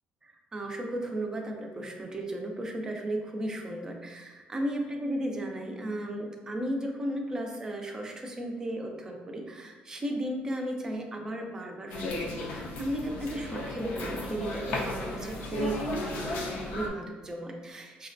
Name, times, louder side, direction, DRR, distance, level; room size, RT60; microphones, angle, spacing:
voice 1, 0.5-18.1, right 1 dB, 20° right, 2 dB, 0.5 m, -35 dB
sound 1, 11.9-16.9, left 2 dB, 75° left, 0.6 m, -35 dB
5.5 x 2.1 x 2.5 m, 1.3 s
cardioid pair, 145°, 3 cm